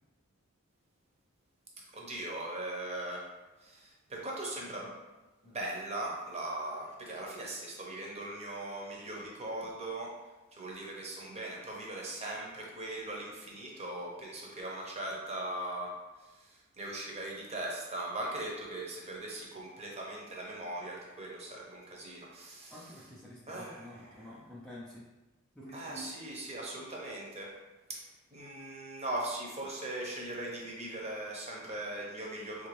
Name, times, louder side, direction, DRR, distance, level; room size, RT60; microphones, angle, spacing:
voice 1, 1.9-3.3 3.6-4.9 5.4-10.1 10.5-15.9 16.2-22.8 23.5-24.3 25.7-27.5 27.9-32.7, right 1 dB, 30° right, -3 dB, 0.7 m, -40 dB
voice 2, 22.7-25.1 25.5-26.1, equal, 5° left, -7 dB, 0.4 m, -48 dB
3.5 x 2.5 x 3.1 m, 1.1 s
head